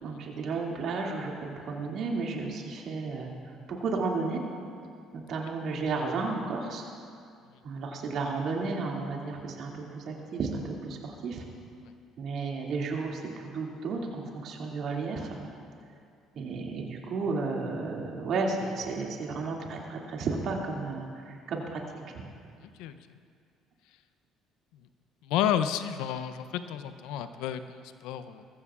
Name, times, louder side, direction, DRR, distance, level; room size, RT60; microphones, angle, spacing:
voice 1, 0.0-3.3 3.7-4.4 5.1-6.8 7.6-11.4 12.2-15.4 16.3-21.8 22.1-22.2, right 4 dB, 60° right, -1 dB, 2.4 m, -33 dB
voice 2, 25.2-28.4, left 10 dB, 75° left, 11 dB, 0.6 m, -31 dB
21.0 x 15.0 x 2.5 m, 2.3 s
hypercardioid pair, 60°, 0 cm